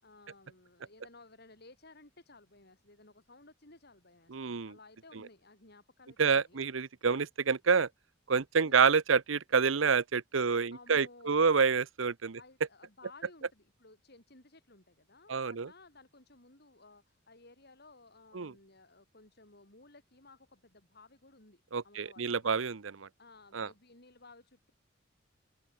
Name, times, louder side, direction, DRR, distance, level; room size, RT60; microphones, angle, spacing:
voice 1, 0.0-6.7 8.6-8.9 10.5-11.5 12.4-22.3 23.2-24.7, left 2 dB, 55° left, 5.9 m, -57 dB
voice 2, 4.3-4.7 6.2-7.9 8.3-12.4 15.3-15.7 18.3-18.5 21.7-23.1 23.5-23.7, right 5 dB, 90° right, 0.8 m, -28 dB
head